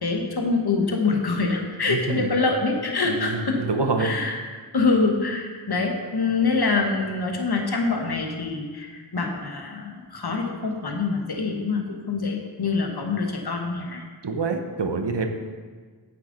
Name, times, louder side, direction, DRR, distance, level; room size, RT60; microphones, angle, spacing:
voice 1, 0.0-3.6 4.0-4.4 4.7-14.0, left 4 dB, 55° left, 2 dB, 1.2 m, -25 dB
voice 2, 1.9-2.3 3.0-4.1 14.2-15.3, right 4 dB, 65° right, 6 dB, 0.9 m, -26 dB
8.9 x 7.4 x 3.9 m, 1.5 s
wide cardioid pair, 45°, 45 cm